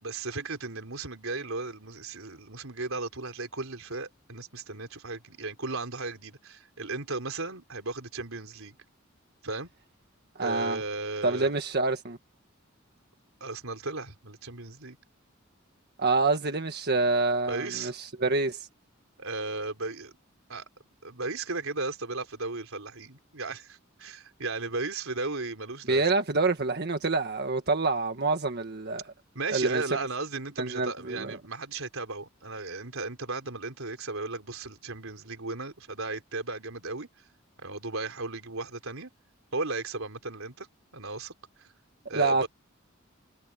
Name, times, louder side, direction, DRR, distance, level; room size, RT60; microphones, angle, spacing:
voice 1, 0.0-8.8 9.4-9.7 10.4-11.6 13.4-15.0 17.5-17.9 19.2-20.1 20.5-20.7 21.0-26.0 29.3-37.1 37.6-39.1 39.5-40.7 40.9-41.3 42.1-42.5, right 3 dB, 85° right, 3.8 m, -35 dB
voice 2, 10.4-10.8 11.2-12.2 16.0-18.7 25.9-29.0 29.5-29.8 30.6-31.4 42.1-42.5, right 3 dB, 55° right, 1.6 m, -27 dB
head